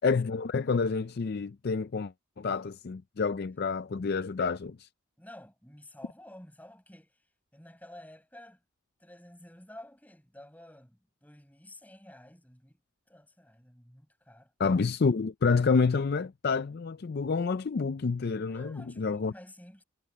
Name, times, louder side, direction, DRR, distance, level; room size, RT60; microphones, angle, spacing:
voice 1, 0.0-4.9 14.6-19.3, left 4 dB, 50° left, 0.4 m, -28 dB
voice 2, 5.2-7.3 7.5-8.6 9.0-12.8 13.1-14.5 18.5-19.8, left 1 dB, 10° left, 5.7 m, -51 dB
head